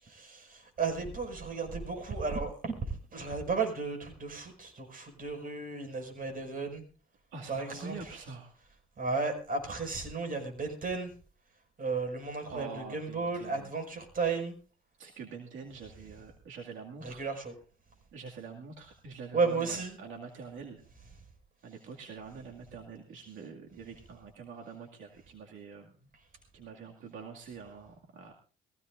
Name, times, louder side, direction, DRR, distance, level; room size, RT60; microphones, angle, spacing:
voice 1, 0.0-6.8 7.5-8.2 9.0-11.1 11.8-14.5 17.0-17.5 19.3-20.0, right 4 dB, 45° right, 3 dB, 5.7 m, -34 dB
voice 2, 7.3-8.5 12.5-13.7 15.0-17.2 18.1-20.8 21.6-25.9 26.5-28.3, right 5 dB, 75° right, 0 dB, 2.3 m, -45 dB
22.0 x 16.0 x 2.6 m, 0.36 s
cardioid pair, 90°, 20 cm